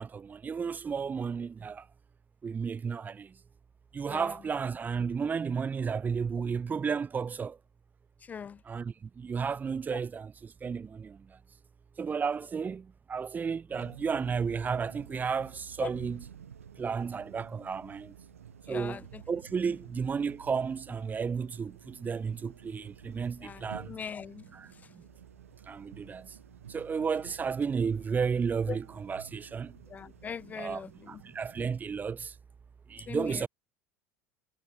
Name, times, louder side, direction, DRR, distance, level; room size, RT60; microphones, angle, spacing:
voice 1, 0.0-1.9 2.4-3.4 3.9-7.6 8.6-11.4 12.0-16.3 16.8-18.1 18.7-24.0 24.4-25.0 25.7-26.4 26.7-29.8 30.5-32.3 32.9-33.5, right 6 dB, 20° right, 2.8 m, -33 dB
sound 1, 13.7-31.7, right 8 dB, 70° right, 4.3 m, -52 dB
voice 2, 18.7-19.0 23.4-24.4 28.7-28.8 29.9-30.9 33.1-33.3, left 7 dB, 20° left, 0.3 m, -39 dB
figure-of-eight pair, 75°, 8 cm